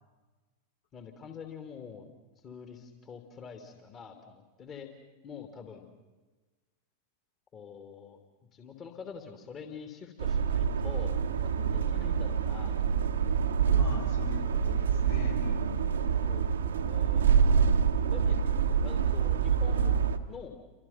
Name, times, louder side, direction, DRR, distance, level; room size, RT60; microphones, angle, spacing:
voice 1, 0.9-2.1 2.4-4.9 5.2-5.9 7.5-8.2 8.5-12.9 13.2-13.4 16.2-16.5 16.8-17.3 18.0-18.2 18.7-19.9 20.3-20.5, left 6 dB, 30° left, 6 dB, 2.8 m, -46 dB
sound 1, 10.2-20.2, right 7 dB, 65° right, 1.5 m, -26 dB
voice 2, 13.7-15.9 18.2-18.3, left 5 dB, 60° left, 2 dB, 5.2 m, -42 dB
29.5 x 26.0 x 5.8 m, 1.2 s
figure-of-eight pair, 90°, 0 cm